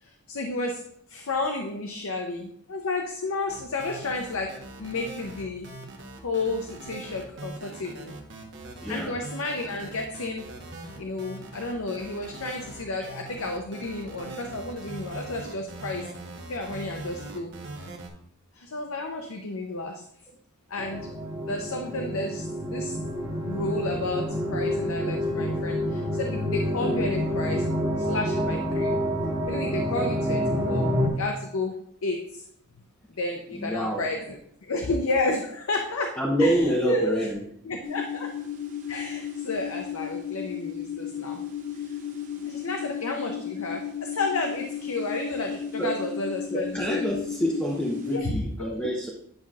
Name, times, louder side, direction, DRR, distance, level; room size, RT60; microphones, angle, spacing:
voice 1, 0.0-0.8 1.1-5.7 6.2-8.1 8.9-10.5 11.0-16.1 16.5-17.5 18.5-20.0 20.7-29.0 29.4-31.7 32.0-32.4 33.1-34.4 34.6-37.3 37.6-38.3 38.9-41.4 41.8-41.9 42.4-47.0 48.1-48.9, left 2 dB, 75° left, 3 dB, 0.7 m, -32 dB
sound 1, 3.5-18.1, right 2 dB, 55° right, 1.2 m, -41 dB
voice 2, 8.8-9.2 33.5-34.1 36.2-37.4 45.8-45.9 46.5-49.1, equal, 5° left, -3 dB, 0.8 m, -27 dB
sound 2, 20.8-31.1, equal, 15° right, 1.4 m, -28 dB
sound 3, 37.8-48.2, left 8 dB, 35° right, 0.9 m, -34 dB
9.7 x 5.8 x 2.4 m, 0.71 s
head